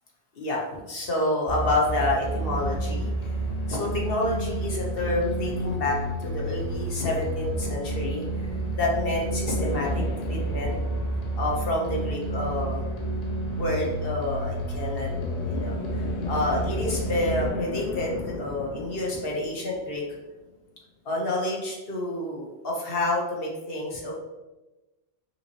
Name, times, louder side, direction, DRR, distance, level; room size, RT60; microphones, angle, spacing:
voice 1, 0.4-3.3 3.7-8.3 8.8-9.9 10.3-10.7 11.4-12.8 13.6-15.1 15.5-20.0 21.0-24.1, left 1 dB, 60° left, -2 dB, 1.2 m, -28 dB
sound 1, 1.5-17.5, right 1 dB, 40° left, 0.9 m, -30 dB
sound 2, 9.5-12.3 15.1-20.5, left 4 dB, 85° left, 0.9 m, -36 dB
5.3 x 3.0 x 3.0 m, 1.1 s
omnidirectional pair, 1.1 m